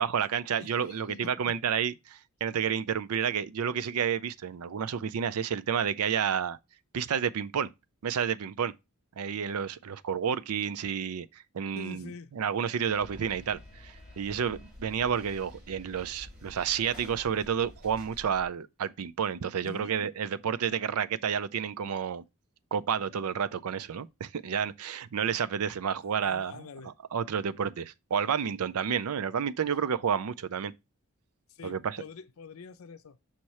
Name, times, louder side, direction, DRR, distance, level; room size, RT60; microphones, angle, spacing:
voice 1, 0.0-6.6 6.9-7.7 8.0-8.7 9.2-11.3 11.5-22.2 22.7-26.6 27.1-30.7 31.6-32.0, right 7 dB, 80° right, 0.4 m, -30 dB
voice 2, 0.6-1.6 11.7-12.3 19.6-19.9 26.2-26.9 28.4-28.5 31.5-33.2, left 4 dB, 70° left, 0.5 m, -45 dB
sound 1, 12.9-18.4, left 1 dB, 45° right, 2.9 m, -49 dB
5.8 x 4.7 x 4.2 m
head